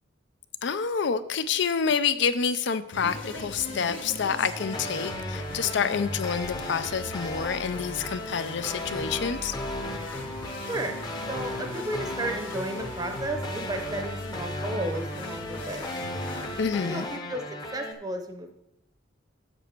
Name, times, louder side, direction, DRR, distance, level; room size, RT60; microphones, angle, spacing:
voice 1, 0.6-9.5 16.6-17.1, left 6 dB, 65° left, 13 dB, 0.5 m, -28 dB
sound 1, 2.9-16.6, left 1 dB, 80° left, 1.4 m, -39 dB
sound 2, 4.6-17.9, left 1 dB, 20° left, 0.8 m, -36 dB
voice 2, 10.6-11.0 11.3-15.9 16.8-17.4 17.7-18.6, right 1 dB, 20° right, 5 dB, 0.7 m, -33 dB
8.0 x 6.5 x 4.5 m, 0.87 s
head